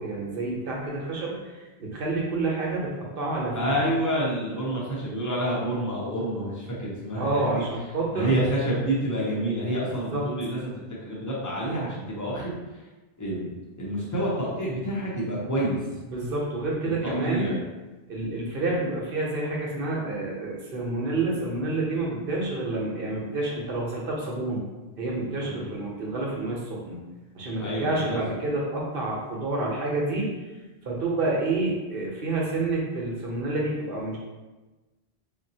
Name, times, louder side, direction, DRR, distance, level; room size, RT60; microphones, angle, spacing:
voice 1, 0.0-3.7 7.2-8.3 10.1-10.2 16.1-17.6 18.1-24.6 25.0-27.0 27.3-30.3 30.9-34.2, right 2 dB, 60° right, -3 dB, 0.9 m, -29 dB
voice 2, 3.5-7.6 8.1-10.7 11.0-12.6 13.2-13.5 13.8-15.8 17.0-17.5 25.3-25.7 27.6-28.4, right 1 dB, 20° left, -5 dB, 0.6 m, -28 dB
3.8 x 2.1 x 2.7 m, 1.2 s
omnidirectional pair, 1.1 m